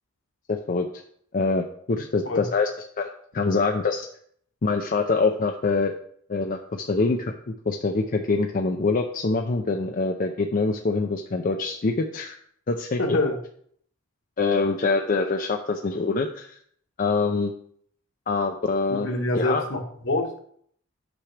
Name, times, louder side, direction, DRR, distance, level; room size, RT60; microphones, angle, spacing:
voice 1, 0.5-0.9 1.3-2.7 3.0-4.1 4.6-5.9 6.3-7.3 7.7-12.4 12.7-13.2 14.4-16.6 17.0-17.5 18.3-19.1 19.4-19.7, left 3 dB, 40° left, 4 dB, 0.5 m, -25 dB
voice 2, 13.0-13.4 18.9-20.4, left 2 dB, 65° left, 3 dB, 1.3 m, -26 dB
8.7 x 6.0 x 3.3 m, 0.63 s
head